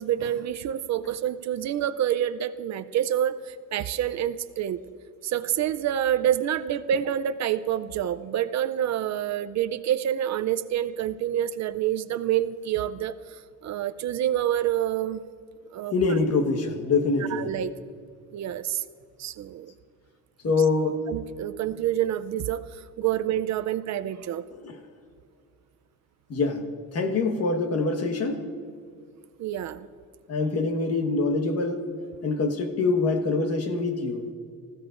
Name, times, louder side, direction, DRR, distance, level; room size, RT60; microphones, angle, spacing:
voice 1, 0.0-4.8 5.2-13.2 13.6-15.2 15.7-15.9 17.2-17.7 18.3-18.8 19.2-19.7 21.1-22.7 23.0-24.4 29.4-29.9, right 11 dB, 55° right, 12 dB, 0.5 m, -27 dB
voice 2, 15.9-17.5 20.4-21.0 24.6-24.8 26.3-26.6 26.9-28.5 30.3-31.8 32.2-34.3, left 3 dB, 45° left, 6 dB, 1.4 m, -25 dB
25.0 x 15.5 x 2.5 m, 2.1 s
cardioid pair, 140°, 33 cm